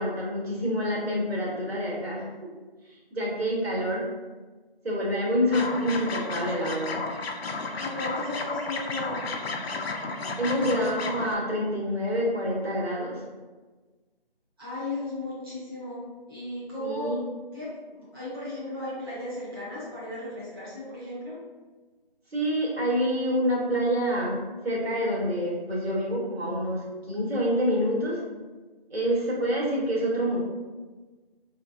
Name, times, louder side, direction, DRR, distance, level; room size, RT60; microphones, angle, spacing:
voice 1, 0.0-2.2 2.9-4.1 4.8-7.0 10.4-13.2 16.8-17.2 22.3-24.4 24.6-28.2 28.9-30.4, equal, 85° right, -4 dB, 1.2 m, -27 dB
sound 1, 5.5-11.4, left 3 dB, 80° left, 0.5 m, -33 dB
voice 2, 7.8-9.2 14.6-17.1 17.5-21.4, left 1 dB, 25° right, -11 dB, 0.6 m, -35 dB
3.1 x 2.6 x 2.3 m, 1.3 s
figure-of-eight pair, 165°, 30 cm